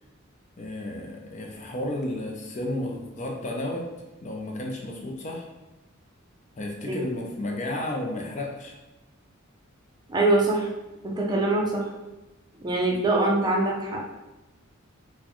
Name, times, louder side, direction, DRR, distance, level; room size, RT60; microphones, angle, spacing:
voice 1, 0.6-3.9 4.2-5.5 6.6-8.7, left 1 dB, 35° left, 1 dB, 0.4 m, -32 dB
voice 2, 10.1-10.7 11.0-11.9 12.6-14.0, right 2 dB, 20° right, -2 dB, 0.5 m, -23 dB
4.1 x 2.2 x 2.9 m, 1.0 s
head